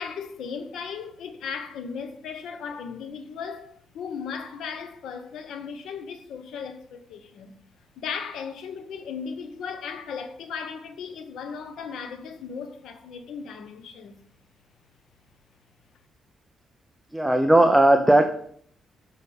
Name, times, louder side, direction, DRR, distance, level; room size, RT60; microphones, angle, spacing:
voice 1, 0.0-7.5 8.0-14.2, left 6 dB, 85° left, 1.1 m, -36 dB
voice 2, 17.1-18.3, right 1 dB, 5° right, 0.6 m, -17 dB
6.6 x 5.5 x 7.0 m
cardioid pair, 145°, 0 cm